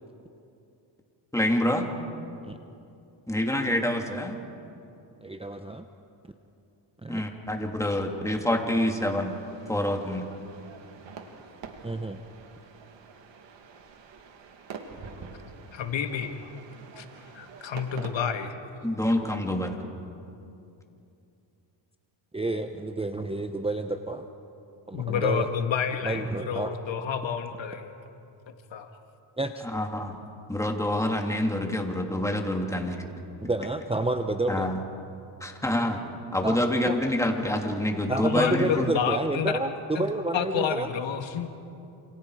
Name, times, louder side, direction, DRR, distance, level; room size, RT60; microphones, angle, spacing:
voice 1, 1.3-1.8 3.3-4.3 7.1-9.3 9.7-10.2 18.8-19.8 29.6-30.2 30.5-33.0 34.5-34.8 35.4-36.0 36.3-38.9, left 1 dB, 5° left, 2 dB, 2.8 m, -27 dB
voice 2, 5.2-5.8 7.0-7.2 11.8-12.2 22.3-24.3 24.9-25.5 26.0-26.7 29.4-29.7 33.4-34.7 36.4-36.6 36.8-37.0 38.1-40.9, right 2 dB, 10° right, 7 dB, 0.9 m, -30 dB
sound 1, 9.1-18.1, right 5 dB, 60° right, 2.5 m, -46 dB
voice 3, 15.7-16.4 17.0-17.1 17.3-18.5 24.9-27.9 28.5-28.9 38.1-39.6 40.0-41.5, left 7 dB, 65° left, 6 dB, 1.8 m, -29 dB
28.5 x 27.5 x 4.9 m, 2.7 s
cardioid pair, 100°, 49 cm